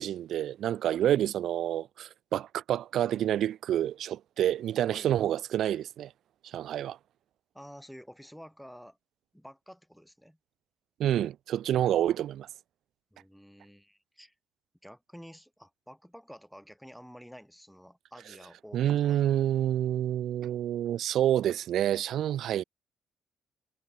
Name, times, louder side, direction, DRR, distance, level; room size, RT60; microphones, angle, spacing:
voice 1, 0.0-6.1 6.4-7.0 11.0-12.5 18.7-22.6, right 11 dB, 75° right, 0.4 m, -28 dB
voice 2, 7.5-9.0 9.3-10.4 13.1-14.3 14.8-19.4, equal, ahead, 3.1 m, -50 dB
cardioid pair, 90°, 0 cm